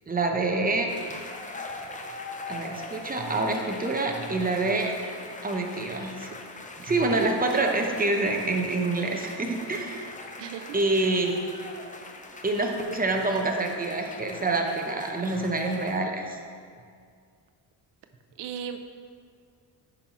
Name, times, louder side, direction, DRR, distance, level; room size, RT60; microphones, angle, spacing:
voice 1, 0.1-0.9 2.5-4.9 5.4-6.3 6.8-10.1 10.7-11.4 12.4-16.4, right 2 dB, 20° right, 2 dB, 0.8 m, -26 dB
sound 1, 0.9-16.0, left 3 dB, 20° left, 0.5 m, -42 dB
voice 2, 10.4-11.1 18.4-18.8, right 8 dB, 85° right, 7 dB, 0.6 m, -37 dB
10.5 x 5.6 x 3.0 m, 2.2 s
cardioid pair, 120°, 41 cm